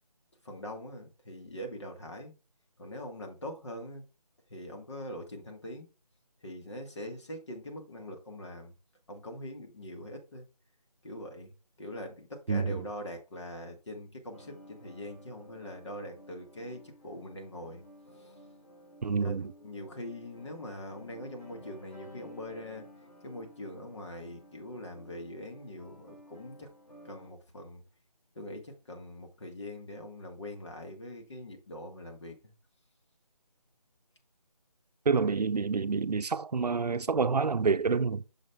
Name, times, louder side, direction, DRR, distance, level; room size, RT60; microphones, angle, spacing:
voice 1, 0.4-2.3 2.8-4.0 4.5-5.9 6.4-8.7 9.1-10.5 11.0-11.5 11.8-17.8 18.2-18.3 19.2-22.9 23.2-26.7 27.0-27.8 28.4-32.5, left 1 dB, 45° left, 1.7 m, -43 dB
voice 2, 12.5-12.9 19.0-19.5 35.1-38.2, right 5 dB, 90° right, 0.6 m, -28 dB
sound 1, 14.3-27.3, equal, 85° left, 3.7 m, -54 dB
6.5 x 4.8 x 3.5 m
figure-of-eight pair, 170°, 20 cm